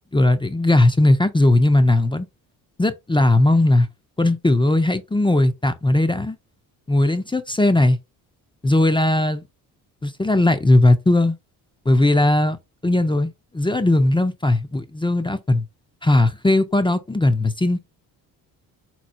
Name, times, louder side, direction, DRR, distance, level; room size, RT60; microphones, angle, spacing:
voice 1, 0.1-2.3 2.8-3.9 4.2-6.4 6.9-8.0 8.6-9.4 10.0-11.4 11.9-12.6 12.8-15.7 16.0-17.8, left 1 dB, 10° left, 0.6 m, -18 dB
4.4 x 4.2 x 2.5 m
hypercardioid pair, 50°, 48 cm